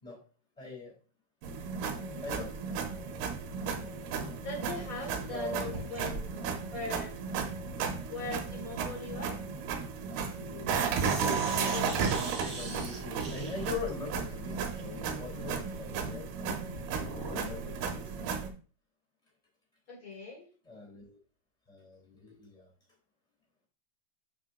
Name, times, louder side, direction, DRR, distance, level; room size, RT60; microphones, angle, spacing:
voice 1, 0.6-0.9 2.2-2.6 5.3-5.8 7.9-8.0 11.2-12.0 12.2-16.7 17.0-18.2 20.6-21.2 21.7-22.7, left 5 dB, 10° left, -1 dB, 2.8 m, -42 dB
sound 1, 1.4-18.5, right 6 dB, 85° right, 3.0 m, -34 dB
voice 2, 4.4-5.5 5.9-7.2 8.1-9.4 10.4-10.9 19.9-20.5, left 2 dB, 80° left, 0 dB, 0.7 m, -41 dB
sound 2, 5.5-10.7 10.9-17.5, right 2 dB, 50° right, 1.2 m, -44 dB
8.2 x 6.0 x 2.5 m, 0.37 s
omnidirectional pair, 4.5 m